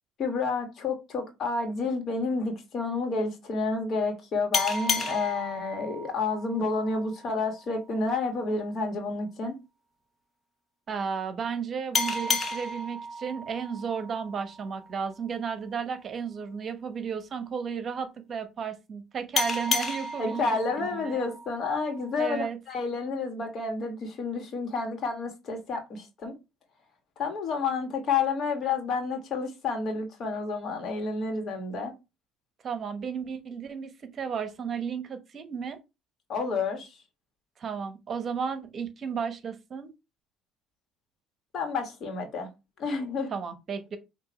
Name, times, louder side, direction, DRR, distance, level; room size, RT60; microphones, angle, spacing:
voice 1, 0.2-9.5 20.2-26.4 27.2-31.9 36.3-37.0 41.5-42.5 42.8-43.3, left 4 dB, 55° left, 1.7 m, -30 dB
sound 1, 4.5-7.8 11.9-15.2 19.4-22.3, left 3 dB, 35° left, 0.9 m, -33 dB
voice 2, 10.9-21.2 22.2-22.6 32.6-35.8 37.6-39.9 43.3-44.0, right 6 dB, 45° right, 1.0 m, -34 dB
6.0 x 2.8 x 3.1 m
supercardioid pair, 85°, 0 cm